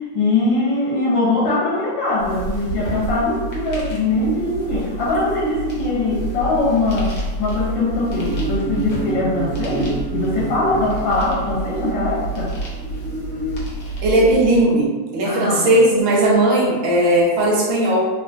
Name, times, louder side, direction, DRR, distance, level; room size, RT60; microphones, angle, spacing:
voice 1, 0.0-7.1 7.4-12.5 15.2-15.8, left 2 dB, 80° left, -7 dB, 1.4 m, -21 dB
sound 1, 2.2-14.6, right 2 dB, 60° left, 1.0 m, -29 dB
sound 2, 4.1-12.0 12.6-13.6, right 3 dB, 50° right, 1.0 m, -32 dB
voice 2, 14.0-18.1, right 1 dB, 90° right, -3 dB, 1.5 m, -17 dB
3.6 x 2.2 x 2.5 m, 1.3 s
omnidirectional pair, 2.0 m